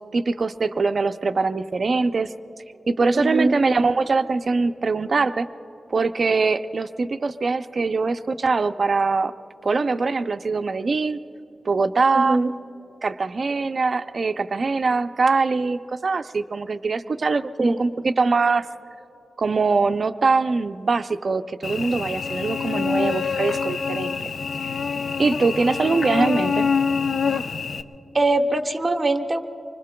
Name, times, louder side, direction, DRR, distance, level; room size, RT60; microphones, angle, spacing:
voice 1, 0.1-2.3 2.9-5.5 5.9-9.3 9.6-11.2 11.6-12.4 13.0-18.7 19.4-24.2 24.6-24.8 25.2-26.7, right 4 dB, 50° right, 9 dB, 0.5 m, -22 dB
voice 2, 3.1-3.5 12.1-12.5 17.6-17.8 28.1-29.4, right 2 dB, 30° right, 5 dB, 0.9 m, -22 dB
Cricket / Buzz, 21.6-27.8, left 5 dB, 70° left, 0.5 m, -25 dB
25.5 x 24.5 x 2.2 m, 2.9 s
wide cardioid pair, 115°, 0 cm